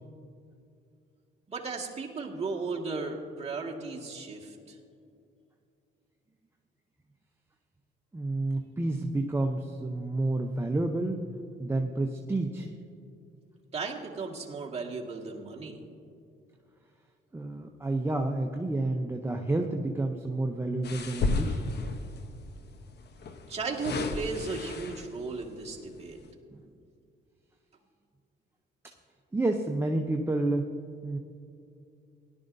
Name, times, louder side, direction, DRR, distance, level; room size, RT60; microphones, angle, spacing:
voice 1, 1.5-4.8 13.7-15.8 23.5-26.2, right 4 dB, 30° right, -2 dB, 1.9 m, -35 dB
voice 2, 8.1-11.3 11.6-12.7 17.3-21.7 26.5-26.6 29.3-30.6 31.0-31.2, right 2 dB, 10° right, 3 dB, 0.7 m, -30 dB
sound 1, 20.8-22.2 23.2-25.2 25.8-26.0, left 3 dB, 60° left, 1.0 m, -32 dB
17.5 x 11.5 x 2.7 m, 2.5 s
cardioid pair, 90°, 20 cm